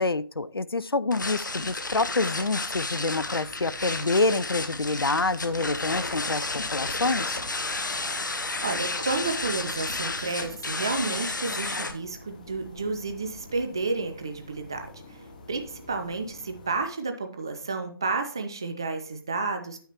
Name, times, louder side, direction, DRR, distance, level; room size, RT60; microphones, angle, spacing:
voice 1, 0.0-6.4 6.7-7.4, left 3 dB, 85° left, 0.4 m, -27 dB
sound 1, 1.1-11.9, left 3 dB, 55° left, 1.1 m, -32 dB
sound 2, 3.1-16.9, left 2 dB, 20° left, 0.7 m, -49 dB
voice 2, 8.6-15.2 15.5-19.8, right 3 dB, 10° right, 0.3 m, -31 dB
9.2 x 8.1 x 2.9 m
figure-of-eight pair, 155°, 12 cm